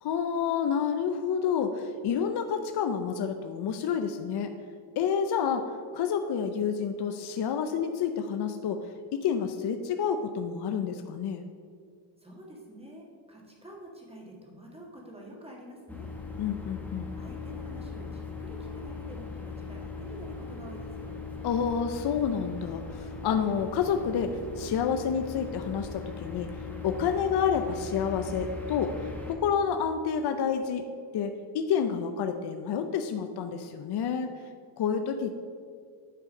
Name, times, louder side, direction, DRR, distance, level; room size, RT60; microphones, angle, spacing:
voice 1, 0.0-4.5 5.0-5.7 5.9-8.8 9.2-11.5 16.4-17.1 21.4-26.5 26.8-28.9 29.3-30.8 31.1-34.3 34.8-35.4, left 7 dB, 55° left, 6 dB, 0.6 m, -29 dB
voice 2, 12.2-16.1 17.2-21.1, equal, 10° right, -2 dB, 1.7 m, -47 dB
sound 1, 15.9-29.3, left 4 dB, 5° left, 1.1 m, -39 dB
9.1 x 3.8 x 5.3 m, 2.1 s
cardioid pair, 90°, 48 cm